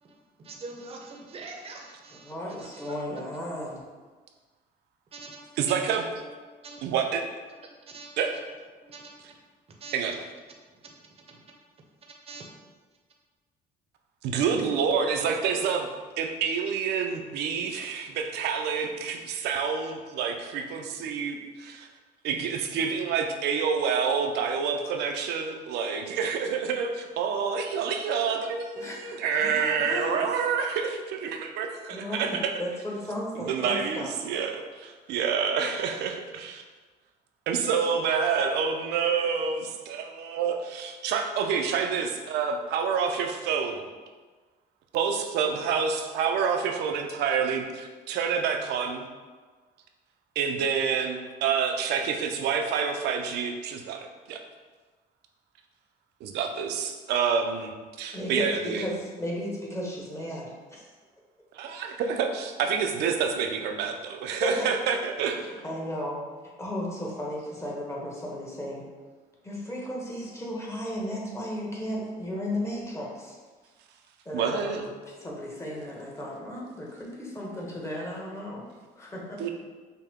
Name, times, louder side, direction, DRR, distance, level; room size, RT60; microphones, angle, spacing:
voice 1, 0.0-3.0 5.1-6.3 6.6-6.8 7.5-8.4 8.9-9.1 9.7-9.9 10.8-11.4 12.2-12.5, right 3 dB, 35° right, 1 dB, 0.7 m, -45 dB
voice 2, 2.2-3.8 28.8-30.3 31.9-34.1 58.1-60.9 64.4-64.7 65.4-66.2 66.6-68.9 69.4-73.4 74.2-74.9 75.2-78.7 79.0-79.4, left 1 dB, 15° left, -3 dB, 1.1 m, -35 dB
voice 3, 5.6-6.1 6.8-7.2 8.2-8.3 9.9-10.2 14.2-15.9 16.2-21.9 22.2-32.5 33.4-36.6 37.5-43.9 44.9-49.1 50.4-54.4 56.2-57.7 58.0-58.9 61.5-65.5 74.3-74.8 79.4-79.5, right 6 dB, 80° right, 4 dB, 0.5 m, -28 dB
5.6 x 2.2 x 3.6 m, 1.4 s
cardioid pair, 110°, 17 cm